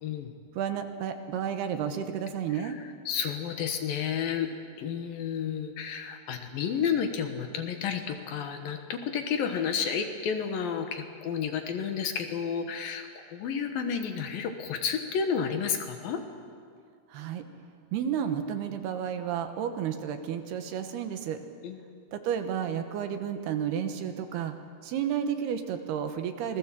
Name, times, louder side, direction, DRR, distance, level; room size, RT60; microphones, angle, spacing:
voice 1, 0.0-0.3 2.6-4.5 4.8-16.2 21.6-22.1, left 7 dB, 65° left, 6 dB, 2.9 m, -31 dB
voice 2, 0.6-2.8 17.1-17.5 17.9-21.4 22.1-24.6 24.8-26.6, right 8 dB, 75° right, 7 dB, 3.2 m, -31 dB
26.5 x 20.0 x 7.5 m, 2.2 s
omnidirectional pair, 4.8 m